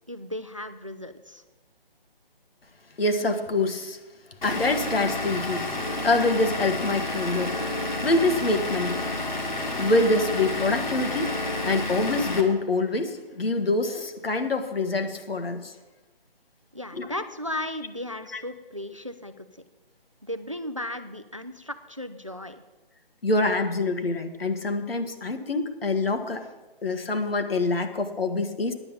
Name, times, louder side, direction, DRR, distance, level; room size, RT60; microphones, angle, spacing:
voice 1, 0.1-1.4 16.7-19.5 20.2-22.6, left 1 dB, 35° right, 11 dB, 0.4 m, -35 dB
voice 2, 3.0-4.0 4.4-7.7 8.0-9.0 9.8-11.4 11.6-15.7 16.9-17.1 18.3-18.4 23.2-26.5 26.8-28.7, left 2 dB, 75° left, 7 dB, 1.6 m, -25 dB
Vehicle / Engine, 4.4-12.4, left 2 dB, 50° left, 1.9 m, -30 dB
9.9 x 7.5 x 8.3 m, 1.2 s
hypercardioid pair, 175°, 30 cm